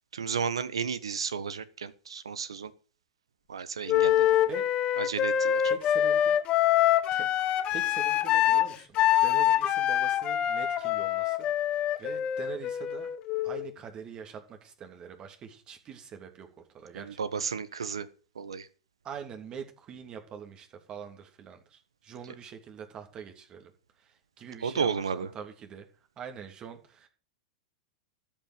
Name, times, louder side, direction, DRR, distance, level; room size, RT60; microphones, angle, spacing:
voice 1, 0.1-2.7 3.5-4.3 5.0-5.6 16.9-18.1 18.3-18.7 24.6-25.3, right 6 dB, 90° right, 15 dB, 1.2 m, -33 dB
Wind instrument woodwind instrument, 3.9-13.7, left 11 dB, 35° left, 1.1 m, -25 dB
voice 2, 4.3-4.6 5.6-6.4 7.1-13.1 13.4-16.5 16.7-17.2 19.0-23.7 24.0-25.9 26.2-27.1, right 7 dB, 30° right, 5 dB, 3.0 m, -44 dB
13.5 x 5.5 x 9.2 m, 0.38 s
hypercardioid pair, 110°, 3 cm